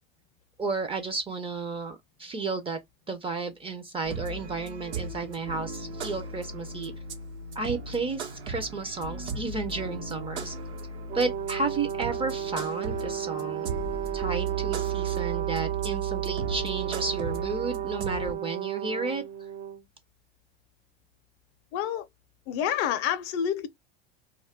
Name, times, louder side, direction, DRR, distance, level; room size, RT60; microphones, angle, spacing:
voice 1, 0.6-2.8 3.1-6.9 7.6-10.5 11.1-13.7 14.1-19.2, right 4 dB, 15° right, 0.4 m, -32 dB
sound 1, 4.0-18.3, right 5 dB, 80° right, 0.9 m, -35 dB
Brass instrument, 11.1-19.8, right 10 dB, 60° right, 0.9 m, -33 dB
voice 2, 21.7-22.1 22.5-23.7, left 9 dB, 45° left, 0.5 m, -28 dB
2.3 x 2.0 x 3.4 m
hypercardioid pair, 95°, 33 cm